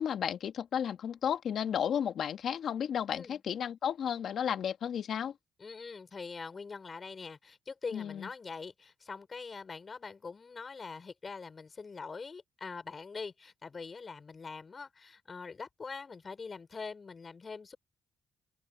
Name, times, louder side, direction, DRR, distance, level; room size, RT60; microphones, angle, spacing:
voice 1, 0.0-5.3 7.9-8.3, left 8 dB, 65° left, 2.5 m, -33 dB
voice 2, 3.1-3.4 5.6-17.8, left 4 dB, 35° left, 8.0 m, -43 dB
cardioid pair, 90°, 0 cm